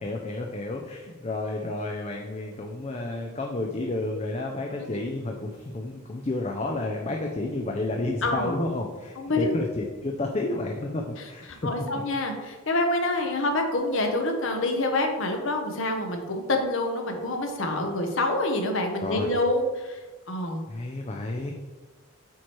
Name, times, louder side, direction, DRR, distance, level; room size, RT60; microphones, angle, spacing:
voice 1, 0.0-11.6 19.0-19.3 20.7-21.5, left 2 dB, 30° left, 1 dB, 0.5 m, -31 dB
voice 2, 8.2-8.6 9.2-9.4 11.6-20.0 20.3-20.6, left 2 dB, 60° left, 3 dB, 0.9 m, -27 dB
8.5 x 3.2 x 4.4 m, 1.3 s
head